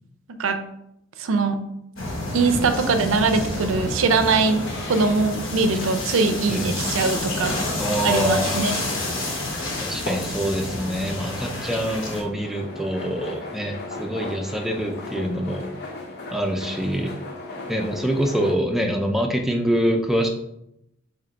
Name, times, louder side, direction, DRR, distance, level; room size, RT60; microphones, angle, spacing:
voice 1, 0.3-0.6 1.2-1.6 2.3-4.6 4.9-7.6 8.0-8.8, right 4 dB, 80° right, 8 dB, 0.5 m, -22 dB
sound 1, 2.0-12.2, left 2 dB, 75° left, 0.9 m, -29 dB
sound 2, 4.2-18.5, left 2 dB, 55° left, 0.6 m, -39 dB
voice 2, 7.8-8.7 9.8-15.6 16.3-17.1 17.7-20.3, equal, ahead, 2 dB, 0.4 m, -25 dB
3.3 x 2.8 x 3.9 m, 0.80 s
head